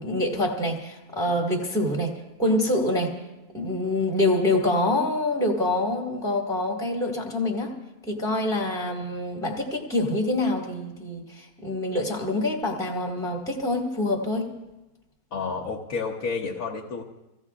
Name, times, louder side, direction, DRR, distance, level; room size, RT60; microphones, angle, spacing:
voice 1, 0.0-3.2 3.5-7.8 8.1-14.5, left 1 dB, ahead, 0 dB, 1.6 m, -26 dB
voice 2, 15.3-17.0, left 4 dB, 60° left, -2 dB, 1.4 m, -30 dB
25.5 x 16.5 x 2.4 m, 1.0 s
omnidirectional pair, 1.7 m